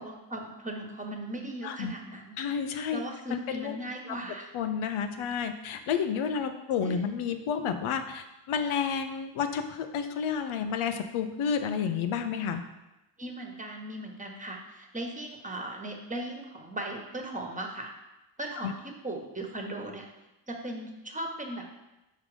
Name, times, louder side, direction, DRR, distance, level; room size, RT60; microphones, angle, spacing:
voice 1, 0.0-2.3 2.9-4.5 6.8-7.0 13.2-17.9 18.4-20.1 20.5-21.8, right 1 dB, 15° right, 2 dB, 1.3 m, -38 dB
voice 2, 2.4-3.0 3.3-3.8 4.1-4.2 4.5-12.6 18.6-18.7, left 7 dB, 85° left, 8 dB, 0.8 m, -30 dB
5.6 x 5.0 x 5.0 m, 0.98 s
cardioid pair, 70°, 48 cm